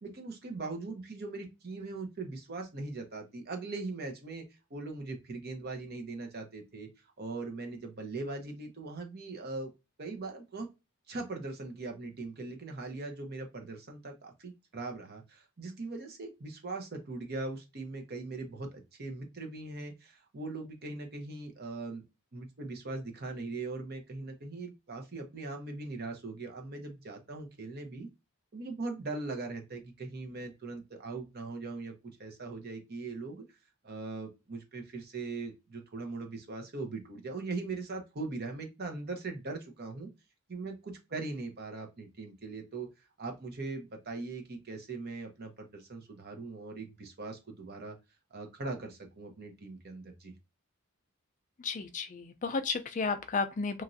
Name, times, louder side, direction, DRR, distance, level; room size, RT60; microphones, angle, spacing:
voice 1, 0.0-4.4 4.7-6.9 7.2-9.7 10.0-10.7 11.1-22.0 22.3-28.1 28.5-31.9 32.2-33.4 33.8-40.1 40.5-42.9 43.2-48.0 48.3-50.3, right 3 dB, 45° right, 0.8 m, -40 dB
voice 2, 51.6-53.8, left 4 dB, 35° left, 0.4 m, -33 dB
3.0 x 2.5 x 2.5 m
head